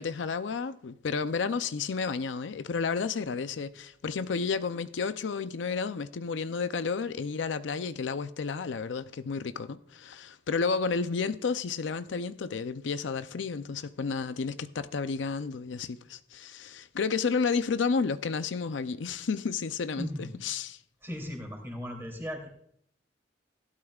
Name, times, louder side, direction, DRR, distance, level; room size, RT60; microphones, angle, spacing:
voice 1, 0.0-20.8, left 5 dB, 85° left, 0.5 m, -31 dB
voice 2, 19.9-20.4 21.0-22.5, left 1 dB, 15° right, 2.9 m, -37 dB
17.0 x 12.0 x 2.4 m
head